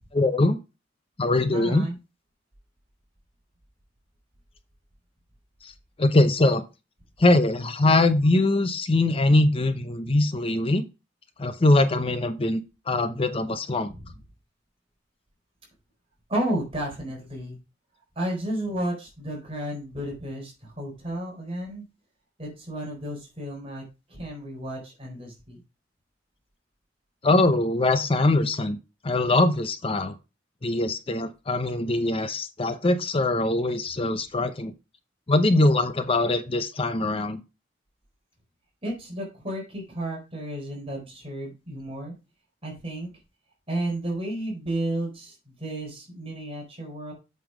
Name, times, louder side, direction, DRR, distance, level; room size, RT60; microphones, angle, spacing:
voice 1, 0.1-0.6 1.2-1.9 5.6-5.7 6.0-6.6 7.2-10.9 11.4-13.9 27.2-28.8 29.0-30.1 30.6-34.7 35.3-37.4, left 2 dB, 30° left, 10 dB, 0.7 m, -22 dB
voice 2, 1.5-2.0 13.9-14.2 16.3-17.6 18.2-21.9 22.4-23.8 24.1-25.6 38.8-42.1 42.6-43.1 43.7-47.1, right 1 dB, 30° right, 0 dB, 4.0 m, -32 dB
7.9 x 5.6 x 5.0 m, 0.28 s
head